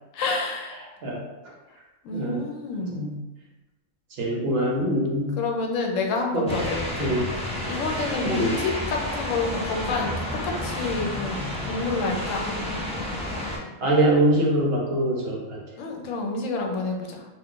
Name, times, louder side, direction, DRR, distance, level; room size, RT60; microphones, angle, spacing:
voice 1, 0.1-0.8 2.0-3.0 5.4-7.1 7.7-12.5 15.8-17.3, left 3 dB, 80° left, 2 dB, 0.9 m, -28 dB
voice 2, 2.1-2.4 2.9-3.2 4.1-5.4 6.3-6.5 7.0-7.3 8.2-8.6 13.8-15.6, right 1 dB, 60° right, -2 dB, 0.8 m, -23 dB
sound 1, 6.5-13.6, left 1 dB, 5° left, 0.6 m, -30 dB
2.4 x 2.4 x 3.6 m, 1.1 s
omnidirectional pair, 1.3 m